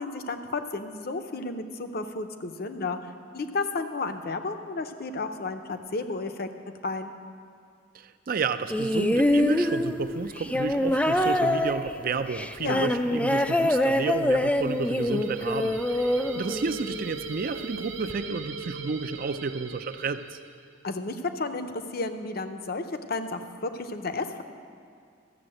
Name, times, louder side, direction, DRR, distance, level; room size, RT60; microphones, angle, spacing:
voice 1, 0.0-3.0 3.3-6.5 6.8-7.1 12.6-12.9 20.8-24.4, left 3 dB, 50° left, 8 dB, 0.7 m, -32 dB
voice 2, 7.9-20.4, right 4 dB, 50° right, 10 dB, 0.5 m, -31 dB
sound 1, 8.7-17.1 18.1-18.2, left 1 dB, 5° left, 0.4 m, -25 dB
sound 2, 14.3-20.7, right 5 dB, 75° right, 0.9 m, -40 dB
14.0 x 7.1 x 7.7 m, 2.3 s
head